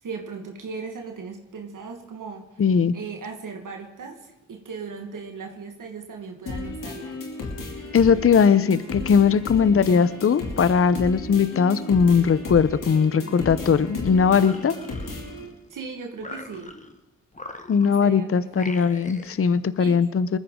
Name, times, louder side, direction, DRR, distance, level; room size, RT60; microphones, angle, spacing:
voice 1, 0.0-2.6 2.9-7.2 15.7-16.7 17.8-18.9 19.8-20.0, right 5 dB, 75° right, 3 dB, 1.6 m, -37 dB
voice 2, 2.6-2.9 7.9-14.7 17.7-20.4, left 6 dB, 45° left, 16 dB, 0.7 m, -19 dB
sound 1, 6.5-15.5, left 2 dB, 80° left, 2.8 m, -34 dB
sound 2, 14.2-15.7 16.2-17.0 17.3-18.1 18.5-19.4, left 2 dB, 25° left, 1.5 m, -41 dB
20.0 x 14.0 x 3.7 m, 1.1 s
supercardioid pair, 40°, 31 cm